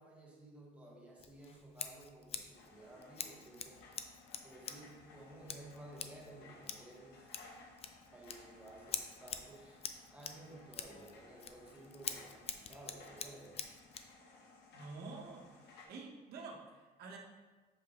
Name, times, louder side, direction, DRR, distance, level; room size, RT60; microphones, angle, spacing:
voice 1, 0.0-3.8 4.4-7.3 8.1-13.6, right 1 dB, 5° right, -3 dB, 1.4 m, -55 dB
Scissors, 1.2-14.1, left 7 dB, 35° left, 0.5 m, -47 dB
sound 1, 2.5-15.8, left 3 dB, 85° left, 1.1 m, -60 dB
voice 2, 14.7-17.2, right 3 dB, 70° right, 0 dB, 1.1 m, -49 dB
6.7 x 4.8 x 3.0 m, 1.3 s
cardioid pair, 110°, 17 cm